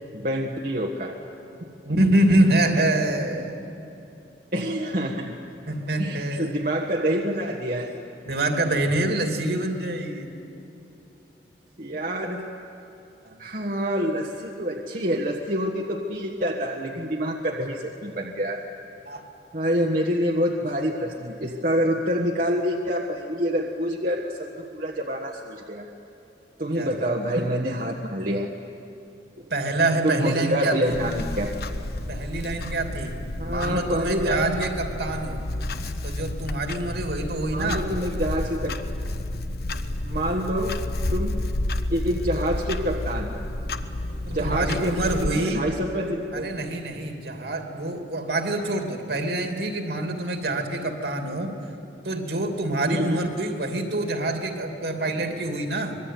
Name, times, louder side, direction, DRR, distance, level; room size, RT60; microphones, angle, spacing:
voice 1, 0.1-1.2 4.5-5.4 6.0-7.9 11.8-12.4 13.4-18.6 19.5-25.9 26.6-28.5 29.4-29.5 30.0-31.6 33.4-34.6 37.4-38.8 40.0-40.8 41.1-41.4 41.9-43.4 44.3-46.5 52.8-53.2, equal, 50° right, 0 dB, 1.5 m, -27 dB
voice 2, 1.8-3.6 5.7-6.5 8.3-10.3 13.2-13.4 19.1-19.2 26.7-26.9 29.5-30.9 32.1-33.2 33.5-35.4 36.0-37.9 44.3-45.6 46.3-51.5 52.0-55.9, right 1 dB, 65° right, 4 dB, 2.9 m, -26 dB
Clock, 30.9-45.3, left 1 dB, 60° left, 1.1 m, -30 dB
25.5 x 22.0 x 9.4 m, 2.9 s
head